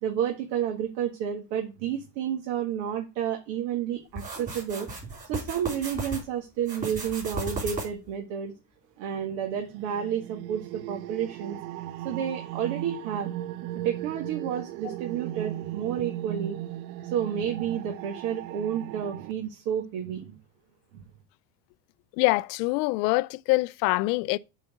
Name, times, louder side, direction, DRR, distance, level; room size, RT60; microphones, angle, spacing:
voice 1, 0.0-4.9 5.3-8.5 9.0-11.6 12.0-13.3 13.8-16.6 17.0-20.4, right 9 dB, 65° right, 1.8 m, -30 dB
sound 1, 4.2-6.2 6.6-8.1, right 2 dB, 15° right, 4.0 m, -35 dB
sound 2, 9.1-19.3, right 13 dB, 85° right, 0.6 m, -37 dB
voice 2, 22.2-24.4, left 21 dB, 85° left, 0.5 m, -24 dB
8.2 x 4.2 x 6.7 m
cardioid pair, 140°, 47 cm